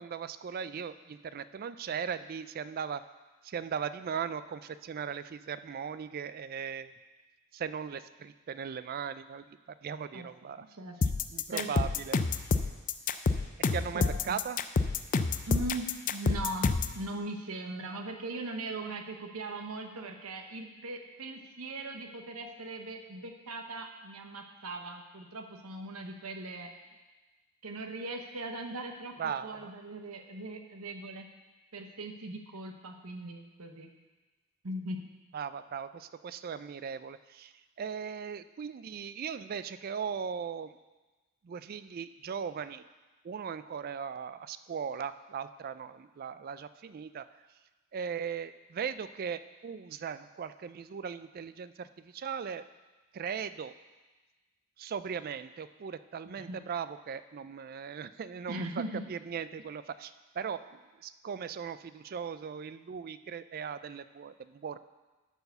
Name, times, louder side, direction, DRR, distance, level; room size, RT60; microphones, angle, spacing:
voice 1, 0.0-3.0 3.4-6.9 7.5-10.6 11.3-12.4 13.7-14.6 29.2-29.7 35.3-37.5 37.8-40.8 41.4-42.8 43.2-47.3 47.9-52.6 53.1-53.7 54.8-64.8, right 7 dB, 40° right, 14 dB, 0.3 m, -38 dB
voice 2, 10.6-10.9 11.5-11.7 13.9-14.4 15.5-26.7 27.6-29.1 29.4-31.3 31.7-33.9 34.6-35.0 56.4-56.6 58.5-59.0, right 2 dB, 75° right, 4 dB, 0.9 m, -39 dB
sound 1, 11.0-17.0, left 4 dB, 35° left, 0.4 m, -28 dB
10.5 x 4.6 x 6.8 m, 1.2 s
head